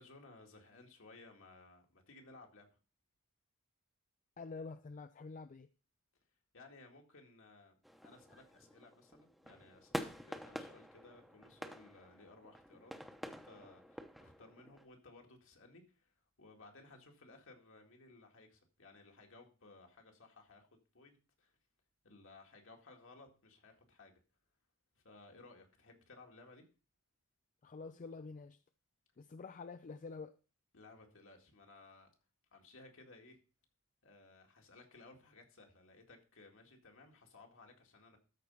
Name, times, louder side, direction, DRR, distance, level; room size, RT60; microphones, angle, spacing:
voice 1, 0.0-2.7 6.5-7.7 8.0-12.9 13.2-16.1 16.4-20.7 20.9-21.6 22.0-24.1 25.0-26.7 30.7-32.1 32.5-33.4 34.0-38.2, left 3 dB, 65° left, 2 dB, 2.0 m, -59 dB
voice 2, 4.4-5.7 27.6-28.6 29.2-30.4, left 4 dB, 40° left, 10 dB, 0.4 m, -47 dB
sound 1, 7.8-14.9, equal, ahead, 0.9 m, -48 dB
13.0 x 4.5 x 5.4 m, 0.35 s
head